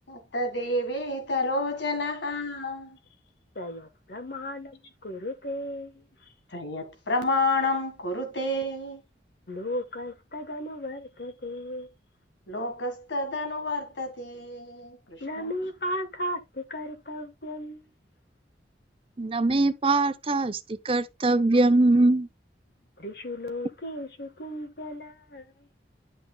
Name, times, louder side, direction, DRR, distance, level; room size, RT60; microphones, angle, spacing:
voice 1, 0.1-3.0 6.5-9.0 12.5-15.5, left 2 dB, 90° left, 1.8 m, -30 dB
voice 2, 3.5-6.3 9.5-11.9 15.2-17.9 23.0-25.7, left 1 dB, 60° left, 1.3 m, -35 dB
voice 3, 19.2-22.3, right 2 dB, 30° right, 0.6 m, -22 dB
11.0 x 5.8 x 2.3 m
head